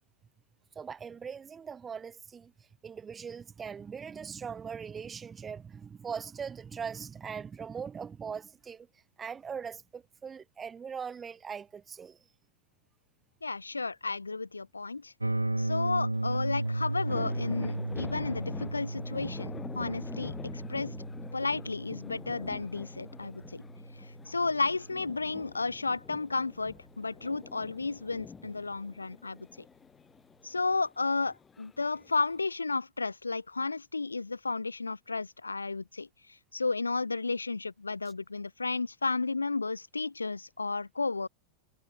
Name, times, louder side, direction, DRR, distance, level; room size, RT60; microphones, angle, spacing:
voice 1, 0.8-2.5 2.8-8.9 9.2-12.2, right 6 dB, 20° right, 3.8 m, -40 dB
voice 2, 13.4-15.1 15.6-20.9 21.3-23.6 24.0-29.5 30.4-41.3, left 3 dB, 80° left, 2.5 m, -33 dB
sound 1, 15.2-25.1, right 2 dB, 85° right, 2.6 m, -35 dB
sound 2, 16.1-32.5, left 6 dB, 20° left, 3.1 m, -47 dB
figure-of-eight pair, 90°, 0 cm